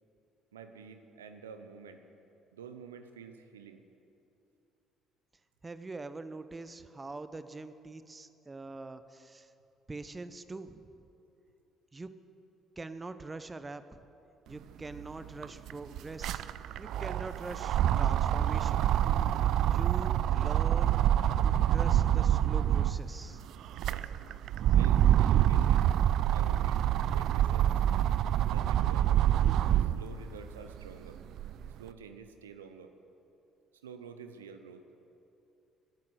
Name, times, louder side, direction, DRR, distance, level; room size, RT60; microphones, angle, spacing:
voice 1, 0.5-2.0 2.5-3.8 23.8-24.1 24.7-25.8 26.3-26.8 27.1-27.8 28.4-29.4 29.7-31.2 31.8-32.9 33.8-34.8, right 6 dB, 80° right, 8 dB, 0.7 m, -49 dB
voice 2, 5.6-9.5 9.9-10.9 11.9-12.1 12.8-13.8 14.5-16.5 16.8-18.8 19.7-21.0 21.4-23.4, right 3 dB, 25° right, 12 dB, 0.9 m, -43 dB
sound 1, 14.9-15.0 15.3-23.1 23.6-30.1 30.6-31.7, right 11 dB, 60° right, 0.4 m, -26 dB
18.5 x 9.8 x 7.7 m, 2.8 s
figure-of-eight pair, 50°, 0 cm